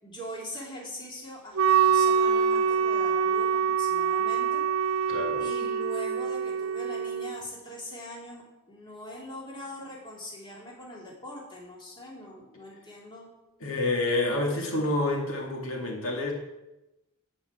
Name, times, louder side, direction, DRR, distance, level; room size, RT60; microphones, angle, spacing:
voice 1, 0.0-13.3, equal, 20° left, -3 dB, 2.7 m, -42 dB
Wind instrument woodwind instrument, 1.5-7.4, right 7 dB, 80° right, 0.6 m, -25 dB
voice 2, 5.1-5.4 13.6-16.3, left 2 dB, 75° left, 0 dB, 2.3 m, -28 dB
11.0 x 5.6 x 8.1 m, 0.97 s
head